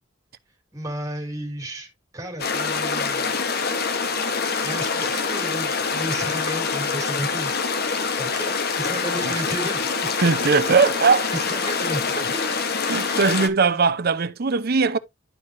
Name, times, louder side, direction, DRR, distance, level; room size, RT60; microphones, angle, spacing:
voice 1, 0.7-3.4 4.6-7.5 8.2-10.2 11.3-12.6, right 1 dB, 15° right, 3.0 m, -33 dB
sound 1, 2.4-13.5, left 5 dB, 50° left, 1.1 m, -25 dB
voice 2, 10.2-11.3 12.9-15.0, right 5 dB, 50° right, 0.6 m, -20 dB
11.0 x 4.9 x 2.6 m
head